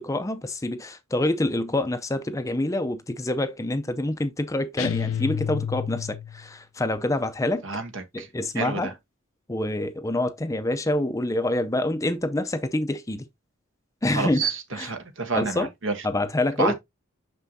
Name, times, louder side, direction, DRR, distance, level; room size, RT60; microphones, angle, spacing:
voice 1, 0.0-7.7 8.1-8.9 9.5-13.3 14.0-14.9 15.3-15.7 16.0-16.7, left 1 dB, 15° left, 0.5 m, -26 dB
sound 1, 4.8-6.5, left 8 dB, 80° left, 0.5 m, -29 dB
voice 2, 7.6-8.3 8.6-8.9 14.1-16.0 16.6-16.7, right 4 dB, 70° right, 1.2 m, -28 dB
6.1 x 5.8 x 2.7 m
head